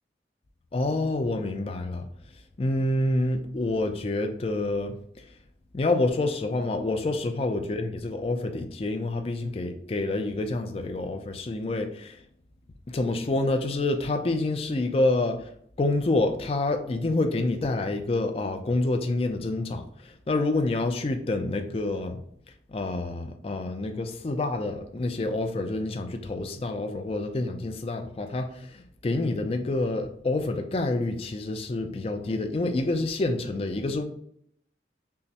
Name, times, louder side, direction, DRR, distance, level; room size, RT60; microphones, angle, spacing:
voice 1, 0.7-2.1 2.6-5.0 5.7-12.2 12.9-15.5 15.8-22.2 22.7-34.0, left 2 dB, 35° left, 0.4 m, -27 dB
5.5 x 2.0 x 2.8 m
head